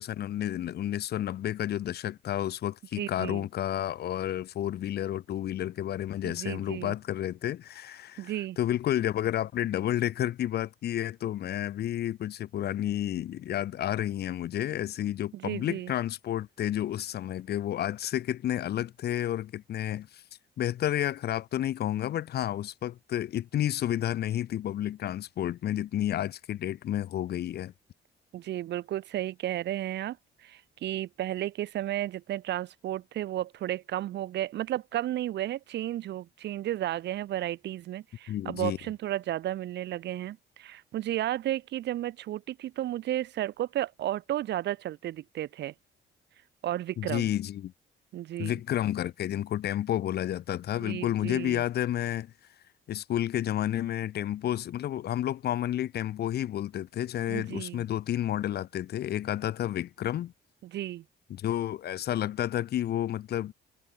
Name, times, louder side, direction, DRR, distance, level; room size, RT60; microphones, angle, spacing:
voice 1, 0.0-20.2 20.6-27.7 38.3-38.8 47.0-47.7 48.4-52.3 52.9-60.3 61.3-63.5, left 12 dB, 55° left, 0.5 m, -31 dB
voice 2, 3.0-3.5 6.2-6.9 8.2-8.6 15.3-15.9 28.3-30.2 30.4-45.7 46.6-47.3 48.1-48.6 50.8-51.6 57.3-57.8 60.6-61.0, right 13 dB, 60° right, 0.4 m, -33 dB
cardioid pair, 90°, 20 cm